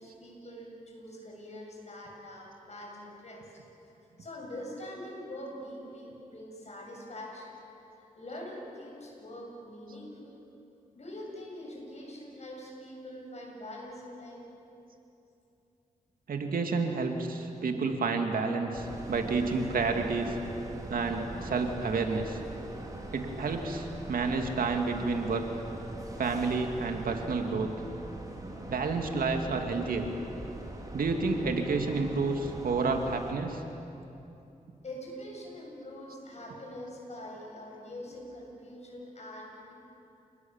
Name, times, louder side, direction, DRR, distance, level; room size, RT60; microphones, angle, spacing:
voice 1, 0.0-3.6 4.2-7.6 7.9-10.4 10.9-14.5 20.5-20.6 31.3-31.4 32.9-33.0 34.8-39.7, left 1 dB, 50° left, -1 dB, 7.5 m, -44 dB
voice 2, 16.3-20.4 20.9-22.4 23.1-25.4 26.2-27.7 28.7-30.1 30.9-33.6, right 4 dB, 85° right, 4 dB, 2.2 m, -30 dB
sound 1, 18.7-33.3, right 1 dB, 25° right, 3.8 m, -42 dB
29.0 x 19.5 x 7.2 m, 2.8 s
cardioid pair, 70°, 14 cm